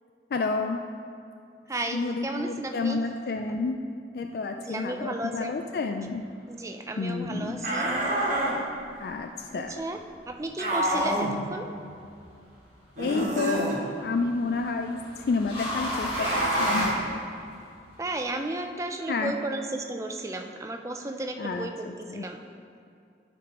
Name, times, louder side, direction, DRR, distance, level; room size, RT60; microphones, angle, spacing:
voice 1, 0.3-0.8 1.9-3.8 4.1-6.2 7.0-7.7 9.0-9.7 13.0-13.6 14.0-17.2 19.1-19.3 21.4-22.2, left 4 dB, 60° left, 5 dB, 0.3 m, -30 dB
voice 2, 1.7-3.0 4.6-5.5 6.5-7.9 9.5-10.0 10.3-11.7 18.0-22.4, right 2 dB, 15° right, 4 dB, 0.4 m, -34 dB
Frustrated Grunts Shouts, 7.6-8.6 10.6-11.3 13.0-13.8 16.1-16.9, right 1 dB, 45° right, 1.2 m, -27 dB
sound 1, 11.8-12.3 13.7-17.7, left 1 dB, 30° left, 1.7 m, -33 dB
11.5 x 5.2 x 3.0 m, 2.4 s
head